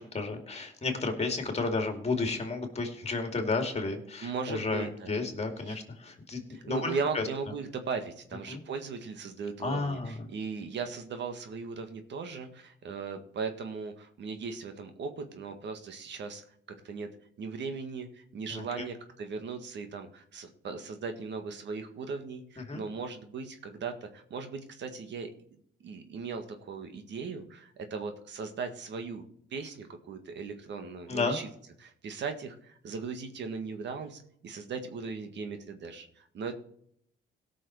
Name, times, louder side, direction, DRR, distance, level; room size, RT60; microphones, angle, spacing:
voice 1, 0.0-7.2 8.5-8.6 9.6-10.2 18.5-18.9 22.7-22.8 31.1-31.4, left 3 dB, 30° left, 4 dB, 2.6 m, -32 dB
voice 2, 4.2-5.2 5.7-5.8 6.5-16.4 16.8-17.1 17.4-25.3 25.8-29.3 29.5-31.5 31.8-36.5, right 5 dB, 65° right, 6 dB, 1.8 m, -38 dB
17.5 x 6.3 x 4.7 m, 0.66 s
cardioid pair, 90°, 20 cm